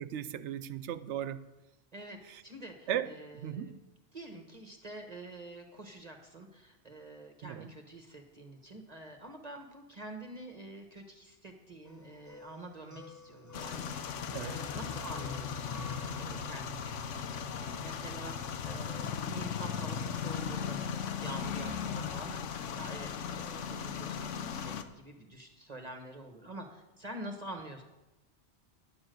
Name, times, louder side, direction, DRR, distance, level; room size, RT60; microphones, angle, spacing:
voice 1, 0.0-1.5 2.3-2.4 2.9-3.1 3.3-3.8 7.4-7.7 14.3-14.6, right 10 dB, 80° right, 14 dB, 0.9 m, -36 dB
voice 2, 1.9-3.7 4.1-27.8, right 1 dB, 35° right, 4 dB, 1.1 m, -47 dB
sound 1, 11.8-17.0, left 3 dB, 15° left, 0.9 m, -50 dB
sound 2, 13.5-24.8, left 7 dB, 90° left, 1.1 m, -37 dB
10.5 x 7.1 x 7.7 m, 1.0 s
omnidirectional pair, 1.2 m